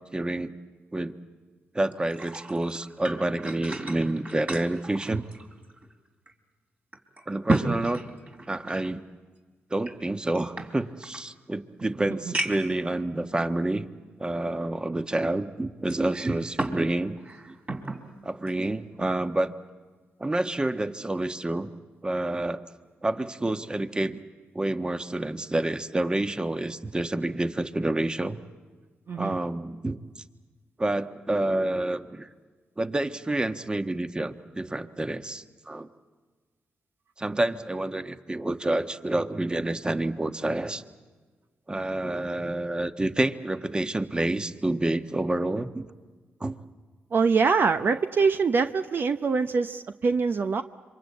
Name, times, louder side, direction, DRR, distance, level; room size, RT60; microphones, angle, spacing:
voice 1, 0.1-0.5 0.9-1.1 1.7-5.2 7.3-8.0 8.5-9.0 9.7-13.8 14.2-17.2 18.2-19.5 20.2-21.7 22.0-22.6 23.0-24.2 24.5-28.4 29.1-30.2 30.8-32.3 32.8-35.9 37.2-40.8 41.7-45.8 46.4-46.6, right 2 dB, 20° right, 9 dB, 1.4 m, -28 dB
sound 1, 1.9-5.9 6.3-6.4 6.9-8.9 9.8-11.2 11.8-11.9 12.3-12.8 13.5-13.6 15.9-16.8 17.2-18.0 18.5-18.7, right 2 dB, 35° right, 3.7 m, -33 dB
voice 2, 47.1-50.6, right 5 dB, 55° right, 8 dB, 0.9 m, -24 dB
26.5 x 24.0 x 8.6 m, 1.4 s
supercardioid pair, 60°, 4 cm